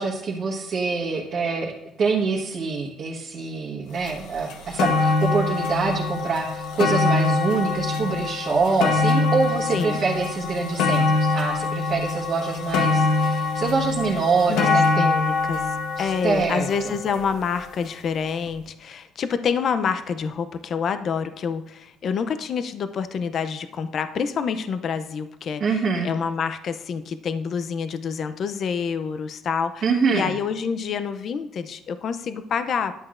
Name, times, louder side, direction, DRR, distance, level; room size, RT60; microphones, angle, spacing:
voice 1, 0.0-1.7 2.0-15.1 16.0-16.9 25.6-26.1 29.8-30.3, right 4 dB, 40° right, -5 dB, 1.4 m, -25 dB
sound 1, 4.1-4.2 4.5-17.7 18.5-18.6, left 3 dB, 80° left, 1.1 m, -24 dB
voice 2, 9.7-10.1 14.5-32.9, left 6 dB, 45° left, 11 dB, 0.5 m, -27 dB
11.0 x 7.9 x 2.5 m, 0.86 s
cardioid pair, 140°, 0 cm